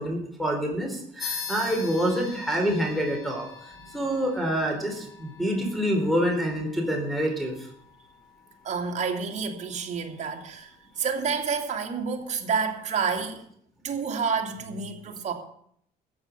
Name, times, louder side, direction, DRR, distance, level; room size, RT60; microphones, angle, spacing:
voice 1, 0.0-3.5 3.9-7.7, equal, ahead, -1 dB, 3.8 m, -27 dB
sound 1, 1.2-11.2, left 6 dB, 20° left, 5.0 m, -43 dB
voice 2, 8.6-10.7 11.0-13.4 13.8-15.3, right 5 dB, 45° right, 2 dB, 2.7 m, -29 dB
14.5 x 6.8 x 8.4 m, 0.68 s
cardioid pair, 110°, 17 cm